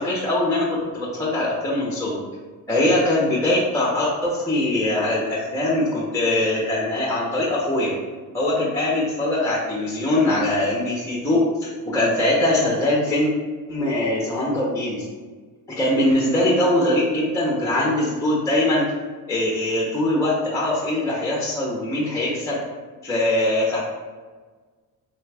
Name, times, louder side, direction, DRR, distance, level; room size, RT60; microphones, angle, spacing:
voice 1, 0.0-2.2 2.7-7.9 8.3-13.3 13.7-15.1 15.7-18.9 19.3-22.6 23.0-23.8, left 1 dB, 10° left, -4 dB, 0.6 m, -22 dB
3.2 x 2.3 x 3.3 m, 1.4 s
cardioid pair, 85°, 37 cm